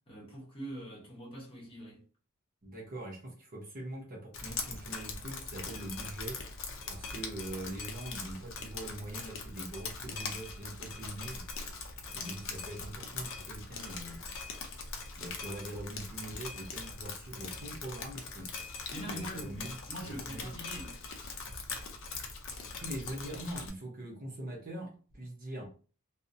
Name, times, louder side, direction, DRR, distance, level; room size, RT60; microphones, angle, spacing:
voice 1, 0.1-2.0 18.9-20.9, right 1 dB, 25° left, 1.0 m, -43 dB
voice 2, 2.6-6.4 6.9-11.5 12.1-14.2 15.2-18.5 19.0-19.7 20.0-20.6 22.8-25.6, right 1 dB, 40° right, 0.6 m, -43 dB
Drip, 4.3-23.7, left 4 dB, 60° left, 0.5 m, -41 dB
2.5 x 2.0 x 2.6 m
head